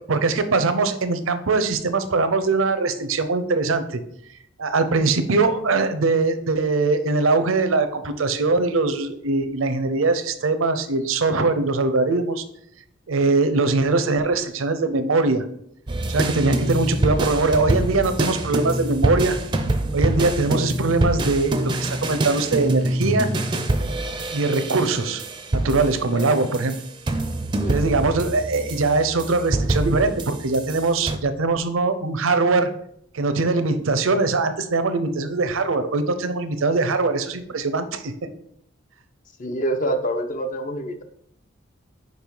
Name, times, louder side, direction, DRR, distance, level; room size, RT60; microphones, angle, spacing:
voice 1, 0.1-4.0 4.6-12.4 13.1-15.4 16.1-19.4 19.9-23.3 24.3-25.2 25.5-26.7 27.7-32.7 33.1-38.3, right 3 dB, 80° right, 10 dB, 0.7 m, -22 dB
sound 1, 15.9-31.2, right 1 dB, 20° right, 0.5 m, -25 dB
voice 2, 39.4-41.0, right 1 dB, 40° left, 8 dB, 0.6 m, -26 dB
5.4 x 4.6 x 4.6 m, 0.70 s
head